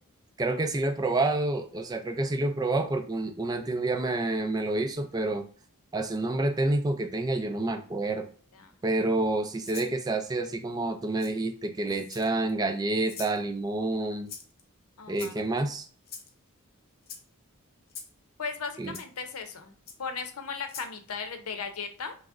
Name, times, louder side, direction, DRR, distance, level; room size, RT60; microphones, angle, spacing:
voice 1, 0.4-5.5 5.9-8.2 8.8-14.3 15.1-15.9 18.8-19.0, right 2 dB, 20° right, 6 dB, 0.3 m, -28 dB
Rattle (instrument), 9.6-9.9 11.2-11.3 12.0-12.5 13.1-13.4 14.3-14.6 15.1-15.6 16.1-16.3 17.0-17.2 17.9-18.1 18.9-19.0 19.9-20.0 20.6-20.9, left 6 dB, 45° left, 0.7 m, -43 dB
voice 2, 15.0-15.4 18.4-19.7 20.0-22.2, left 5 dB, 90° left, 7 dB, 0.6 m, -37 dB
5.9 x 2.0 x 2.5 m, 0.43 s
head